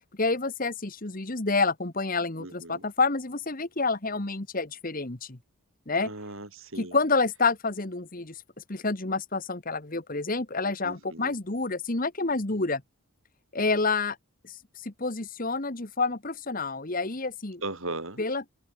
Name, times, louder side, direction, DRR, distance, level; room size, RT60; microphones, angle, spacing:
voice 1, 0.2-5.4 5.9-6.1 6.8-8.4 8.7-12.8 13.5-14.2 14.4-14.5 14.8-17.6 18.2-18.5, left 3 dB, 40° left, 1.5 m, -28 dB
voice 2, 2.4-2.8 6.0-7.0 10.8-11.4 17.6-18.2, right 2 dB, 65° right, 5.5 m, -38 dB
head